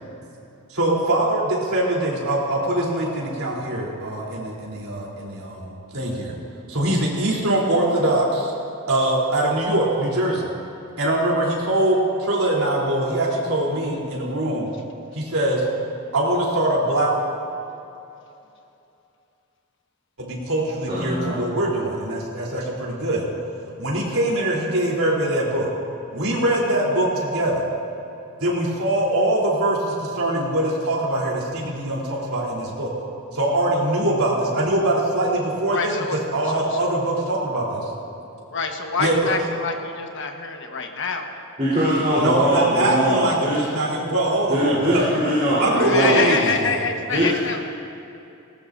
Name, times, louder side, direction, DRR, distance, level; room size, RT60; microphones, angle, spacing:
voice 1, 0.7-6.3 6.7-8.5 8.9-10.5 11.0-14.7 15.1-15.7 16.1-17.1 20.2-23.3 23.8-25.7 26.1-27.7 28.4-32.9 33.3-36.0 36.3-37.9 39.0-39.3 42.2-45.1 45.6-46.5, right 1 dB, 80° right, -4 dB, 3.5 m, -22 dB
voice 2, 20.9-21.4 41.6-43.6 44.5-46.2 47.1-47.3, equal, 30° right, -10 dB, 3.9 m, -21 dB
voice 3, 35.7-36.8 38.5-41.5 45.7-47.6, left 4 dB, 60° left, 3 dB, 1.3 m, -26 dB
19.0 x 18.5 x 2.7 m, 2.7 s
head